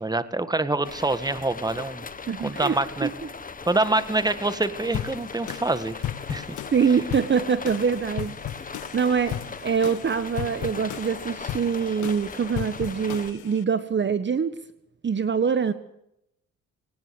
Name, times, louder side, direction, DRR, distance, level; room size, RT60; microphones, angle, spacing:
voice 1, 0.0-2.1 2.4-3.1 3.7-6.0 6.3-6.5, right 2 dB, 15° right, 12 dB, 1.9 m, -25 dB
sound 1, 0.8-13.3, left 5 dB, 30° left, 1.7 m, -39 dB
voice 2, 2.3-2.8 3.0-3.1 6.7-8.6 8.9-14.5 15.0-15.7, right 6 dB, 40° right, 12 dB, 1.5 m, -24 dB
sound 2, 4.9-13.6, left 12 dB, 80° left, 1.1 m, -36 dB
21.0 x 19.0 x 7.9 m, 0.80 s
cardioid pair, 90°, 30 cm